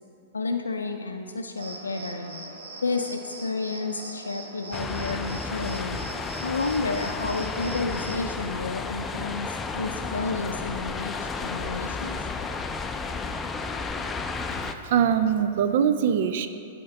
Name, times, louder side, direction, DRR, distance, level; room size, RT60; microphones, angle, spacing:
voice 1, 0.3-2.3 2.8-6.0 6.4-12.2, left 3 dB, 90° left, 4 dB, 0.4 m, -31 dB
Cricket, 1.6-8.3, right 3 dB, 75° right, 1.2 m, -41 dB
sound 1, 4.7-14.7, left 4 dB, 15° left, 0.4 m, -32 dB
voice 2, 14.5-16.5, right 8 dB, 60° right, 10 dB, 0.4 m, -23 dB
8.7 x 4.3 x 6.5 m, 2.7 s
hypercardioid pair, 110°, 0 cm